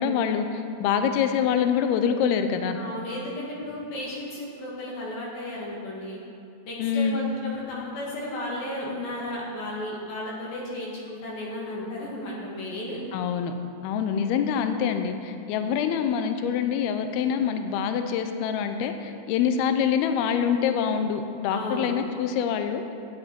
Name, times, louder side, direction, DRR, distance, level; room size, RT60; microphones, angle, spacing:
voice 1, 0.0-2.8 6.8-7.3 13.1-13.5 13.8-22.8, left 7 dB, 80° left, 7 dB, 2.4 m, -25 dB
voice 2, 2.7-6.2 6.6-13.0 21.5-21.9, left 1 dB, 65° left, -4 dB, 3.3 m, -34 dB
12.5 x 9.8 x 4.5 m, 2.4 s
omnidirectional pair, 4.9 m